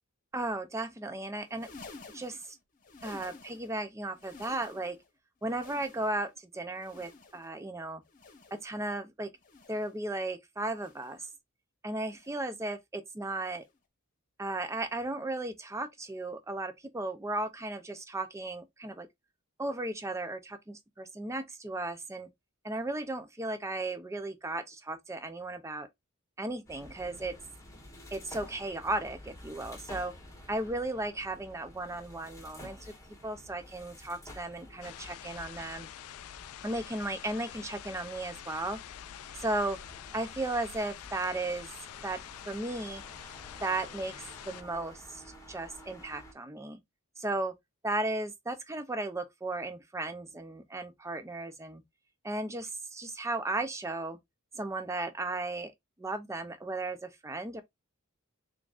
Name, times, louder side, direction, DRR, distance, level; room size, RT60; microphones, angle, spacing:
voice 1, 0.3-1.7 2.1-2.6 3.0-5.0 5.4-8.0 8.5-9.3 9.7-11.3 11.8-13.6 14.4-19.1 19.6-22.3 22.6-25.9 26.4-27.3 28.1-30.1 30.5-32.9 33.2-35.9 36.6-38.8 39.4-39.8 40.1-41.7 42.0-42.2 42.4-43.0 43.6-44.1 44.5-45.2 45.5-46.8 47.2-47.5 47.8-51.8 52.2-54.2 54.5-55.7 56.0-57.6, right 2 dB, 15° right, 0.5 m, -35 dB
sound 1, 1.4-3.8 4.1-5.1 5.4-6.4 6.7-7.6 8.0-8.8 9.3-10.0 10.7-11.3 12.0-12.6 13.3-13.8 14.7-15.0 16.0-16.2 17.3-17.4, left 3 dB, 40° left, 0.9 m, -52 dB
sound 2, 26.7-46.3, left 1 dB, 15° left, 1.0 m, -51 dB
sound 3, 34.8-44.6, left 11 dB, 80° left, 0.3 m, -47 dB
3.8 x 3.5 x 2.4 m
head